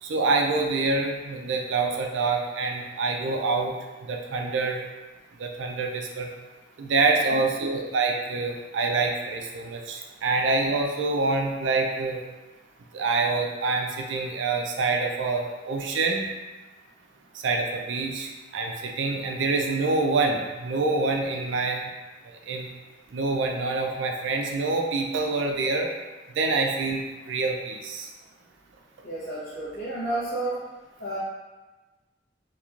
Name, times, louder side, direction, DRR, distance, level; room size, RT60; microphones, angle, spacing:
voice 1, 0.0-3.8 4.0-4.8 5.4-6.3 6.8-12.2 12.9-16.3 17.3-21.9 22.2-22.7 23.1-25.9 26.3-28.1, right 3 dB, 80° right, 2 dB, 0.4 m, -26 dB
voice 2, 29.0-30.6 31.0-31.2, right 2 dB, 65° left, -10 dB, 0.6 m, -31 dB
2.9 x 2.3 x 2.4 m, 1.2 s
head